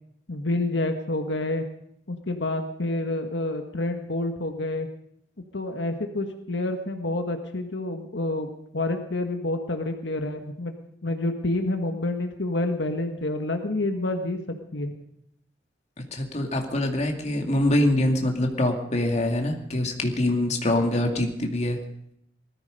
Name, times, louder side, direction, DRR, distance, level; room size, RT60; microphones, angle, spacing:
voice 1, 0.3-1.6 2.1-4.9 5.5-8.5 8.7-10.7 11.0-14.4 14.7-14.9, left 2 dB, 80° left, 5 dB, 1.5 m, -28 dB
voice 2, 16.0-21.8, left 1 dB, 40° left, 3 dB, 2.4 m, -24 dB
19.5 x 14.0 x 5.3 m, 0.76 s
head